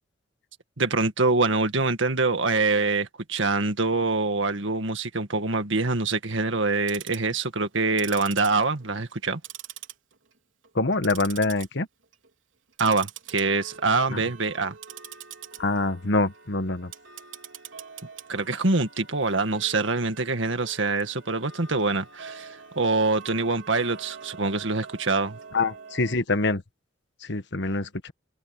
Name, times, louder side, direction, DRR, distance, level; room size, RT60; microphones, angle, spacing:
voice 1, 0.8-9.4 12.8-14.8 18.3-25.4, right 3 dB, 75° right, 2.0 m, -25 dB
Tick-tock, 6.7-7.3 7.9-9.2 9.4-10.3 10.6-11.7 12.0-12.3 12.7-26.1, right 7 dB, 90° right, 3.6 m, -44 dB
voice 2, 10.7-11.9 14.1-14.2 15.6-16.9 25.5-26.6 27.2-28.1, left 2 dB, 65° left, 1.4 m, -25 dB
head